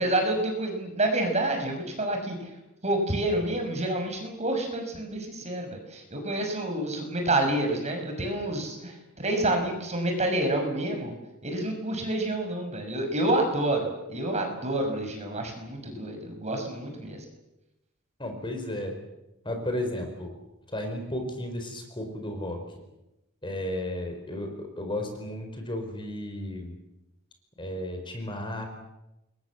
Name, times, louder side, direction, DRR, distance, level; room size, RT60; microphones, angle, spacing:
voice 1, 0.0-2.4 2.8-11.1 11.4-17.2, right 1 dB, 30° right, 4 dB, 6.2 m, -28 dB
voice 2, 18.2-18.9 19.4-20.3 20.7-22.6 23.4-26.8 27.6-28.7, left 1 dB, 25° left, 4 dB, 4.9 m, -33 dB
28.5 x 22.5 x 7.4 m, 0.94 s
head